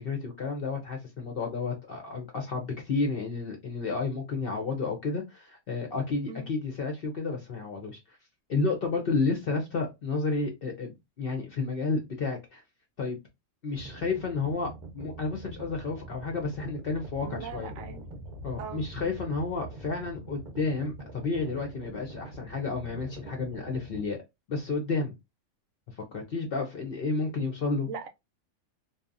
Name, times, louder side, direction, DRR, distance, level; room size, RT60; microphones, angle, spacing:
voice 1, 0.0-8.0 8.5-12.6 13.0-13.2 13.6-17.7 18.4-24.2 24.5-25.2 26.0-27.9, left 3 dB, 55° left, 0.6 m, -31 dB
sound 1, 13.7-24.1, right 2 dB, 50° right, 0.6 m, -44 dB
voice 2, 17.2-18.0 18.6-18.9 27.9-28.1, right 6 dB, 75° right, 1.0 m, -40 dB
2.7 x 2.2 x 2.4 m
omnidirectional pair, 1.5 m